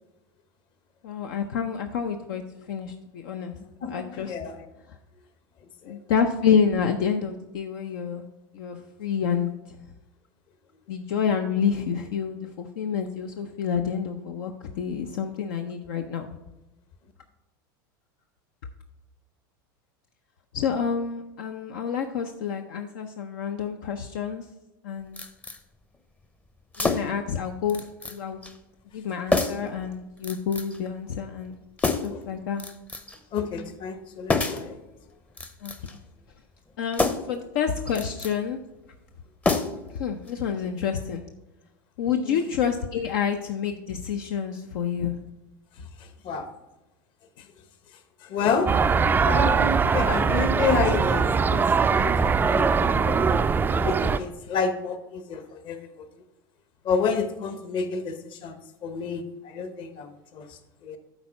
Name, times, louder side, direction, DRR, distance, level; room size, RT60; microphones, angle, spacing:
voice 1, 1.0-3.6 3.9-4.4 5.9-8.2 8.5-9.5 10.9-16.3 20.5-24.4 24.8-25.2 26.8-28.4 28.9-31.6 32.0-32.6 35.6-35.7 36.8-38.6 39.9-41.2 42.0-45.2, left 7 dB, 70° left, 5 dB, 0.6 m, -28 dB
voice 2, 3.8-4.7 5.8-6.0 32.1-32.2 33.3-34.8 42.2-42.4 46.0-46.5 48.2-56.1 56.8-61.0, left 5 dB, 45° left, 9 dB, 1.1 m, -30 dB
sound 1, 25.2-25.6 26.7-27.3 27.7-28.2 28.4-28.6 29.3-29.7 30.2-30.8 31.8-32.2 32.6-33.2 34.3-34.7 35.3-36.0 36.9-37.4 37.9-38.3 39.4-40.0 40.3-40.4, left 3 dB, 10° left, 0.6 m, -27 dB
sound 2, 48.7-54.2, right 5 dB, 15° right, 0.3 m, -22 dB
8.1 x 4.4 x 5.8 m, 0.99 s
hypercardioid pair, 95°, 11 cm